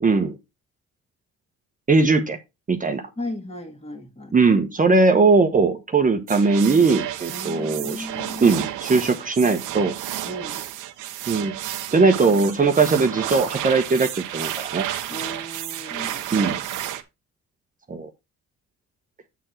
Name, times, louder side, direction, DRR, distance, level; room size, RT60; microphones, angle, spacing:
voice 1, 0.0-0.4 1.9-2.4 2.7-3.0 4.3-8.1 8.4-9.9 11.3-11.5 11.9-14.8 16.3-16.6 17.9-18.1, right 4 dB, 25° right, 1.0 m, -19 dB
voice 2, 3.2-4.4 7.3-8.6 10.2-10.6 15.1-16.4, left 1 dB, 20° left, 2.0 m, -35 dB
sound 1, 6.3-17.0, right 12 dB, 90° right, 0.9 m, -31 dB
8.2 x 4.4 x 4.4 m
cardioid pair, 90°, 30 cm